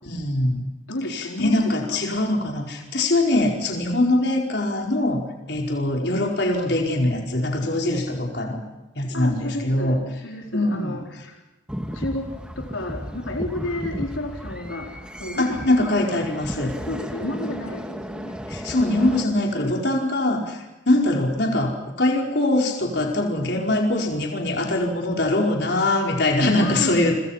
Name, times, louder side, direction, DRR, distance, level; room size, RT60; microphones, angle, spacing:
voice 1, 0.0-0.6 1.1-5.2 5.5-8.6 8.9-10.0 10.5-11.3 15.4-16.7 18.5-27.1, left 1 dB, 55° left, 1 dB, 4.9 m, -22 dB
voice 2, 0.9-2.0 9.1-10.0 10.2-11.4 11.9-14.9 15.2-15.9 16.7-18.3 19.0-19.7 26.6-27.0, left 1 dB, 85° left, 1 dB, 4.5 m, -31 dB
sound 1, 11.7-19.2, equal, 5° right, 1.9 m, -34 dB
29.5 x 26.0 x 5.8 m, 1.0 s
head